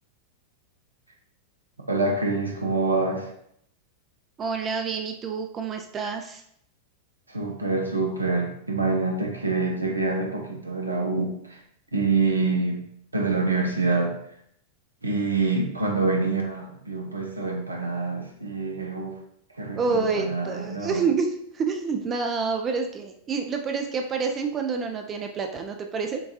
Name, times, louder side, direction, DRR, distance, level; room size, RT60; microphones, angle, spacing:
voice 1, 1.9-3.3 7.3-11.6 11.9-12.9 13.1-14.2 15.0-19.2 19.6-21.0, right 3 dB, 80° right, 1 dB, 0.5 m, -26 dB
voice 2, 4.4-6.4 19.7-26.2, right 5 dB, 25° right, 4 dB, 0.4 m, -28 dB
6.8 x 2.3 x 2.7 m, 0.70 s
figure-of-eight pair, 90°, 0 cm